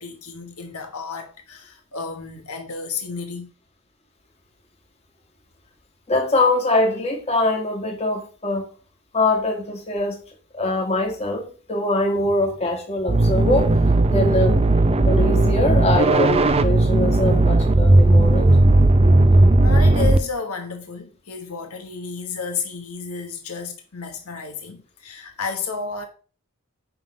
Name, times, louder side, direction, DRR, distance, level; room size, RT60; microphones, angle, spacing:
voice 1, 0.0-3.5 19.6-26.1, left 5 dB, 80° left, 1.3 m, -32 dB
voice 2, 6.1-8.7 9.1-10.2 10.5-13.8 14.1-14.6 15.1-18.5, left 2 dB, 30° left, 2.1 m, -23 dB
sound 1, 13.1-20.2, right 2 dB, 25° right, 0.5 m, -16 dB
9.6 x 3.8 x 5.2 m
head